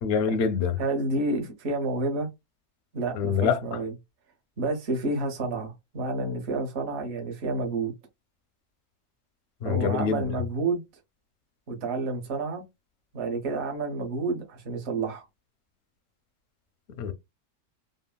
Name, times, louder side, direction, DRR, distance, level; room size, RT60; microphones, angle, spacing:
voice 1, 0.0-0.7 3.2-3.6 9.6-10.2 17.0-17.1, left 6 dB, 65° left, 0.7 m, -25 dB
voice 2, 0.8-2.3 2.9-3.9 4.6-7.9 9.6-10.8 11.7-12.6 13.1-15.3, right 3 dB, 50° right, 1.0 m, -29 dB
3.8 x 2.0 x 2.2 m
omnidirectional pair, 1.7 m